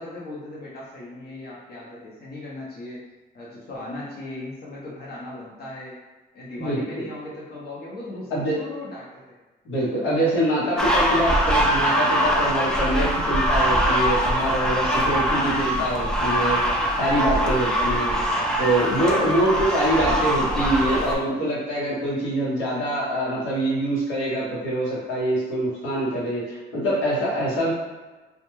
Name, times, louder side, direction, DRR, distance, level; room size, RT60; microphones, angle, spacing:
voice 1, 0.0-3.0 3.3-6.0 6.3-9.2 17.8-18.1 19.2-19.5, left 2 dB, 50° left, -6 dB, 0.8 m, -38 dB
voice 2, 6.6-7.0 8.3-8.5 9.6-18.1 18.6-27.7, right 1 dB, 90° left, -7 dB, 1.0 m, -24 dB
sound 1, 10.8-21.2, equal, 5° left, 0.4 m, -22 dB
2.3 x 2.2 x 3.1 m, 1.2 s
cardioid pair, 90°, 20 cm